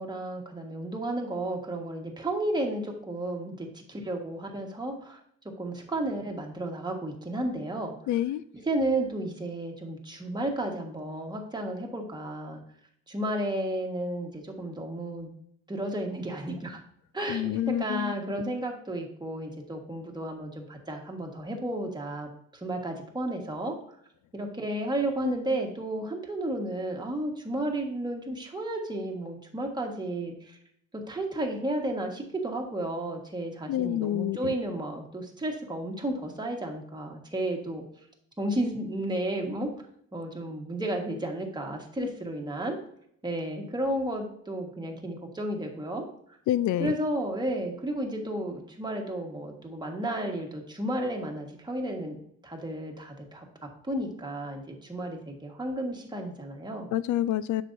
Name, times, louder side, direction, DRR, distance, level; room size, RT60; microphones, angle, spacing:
voice 1, 0.0-5.2 5.6-7.9 8.5-12.6 13.1-15.3 15.7-16.8 17.1-23.8 24.3-30.6 30.9-37.8 38.4-39.7 40.1-42.8 43.2-46.1 46.8-52.2 52.4-53.4 53.8-56.9, right 1 dB, 15° right, 1 dB, 1.5 m, -32 dB
voice 2, 8.1-8.4 17.3-18.1 33.7-34.5 42.0-42.1 46.5-46.9 56.9-57.6, left 12 dB, 70° left, 16 dB, 0.4 m, -27 dB
7.4 x 6.3 x 2.7 m, 0.69 s
cardioid pair, 90°, 30 cm